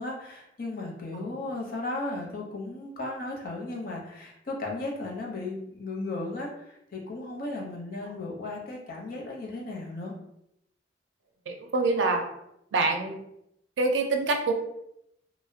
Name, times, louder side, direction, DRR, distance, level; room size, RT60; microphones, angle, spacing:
voice 1, 0.0-10.1, left 2 dB, 55° left, -1 dB, 0.6 m, -35 dB
voice 2, 11.5-12.3 12.7-13.2 13.8-14.5, right 3 dB, 85° right, 3 dB, 0.4 m, -26 dB
2.4 x 2.0 x 2.6 m, 0.81 s
head